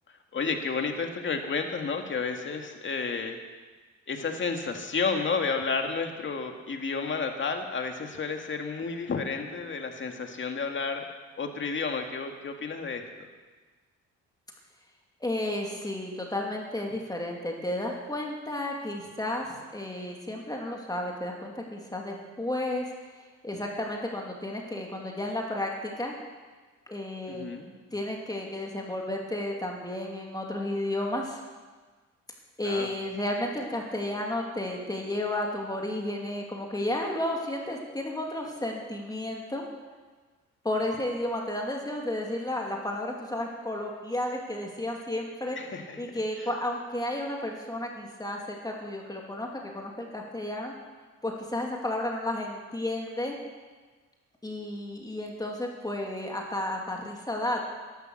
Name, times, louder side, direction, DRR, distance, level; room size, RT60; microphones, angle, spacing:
voice 1, 0.3-3.4 4.1-11.0 11.4-13.0 27.3-27.7 32.6-32.9 45.6-46.1, left 4 dB, 40° left, 4 dB, 2.0 m, -31 dB
voice 2, 15.2-22.9 23.4-26.1 26.9-27.6 27.9-31.4 32.6-39.6 40.6-45.6 46.0-50.7 51.2-53.4 54.4-57.7, left 1 dB, 10° left, 0 dB, 2.5 m, -32 dB
13.5 x 11.5 x 6.6 m, 1.4 s
cardioid pair, 90°, 30 cm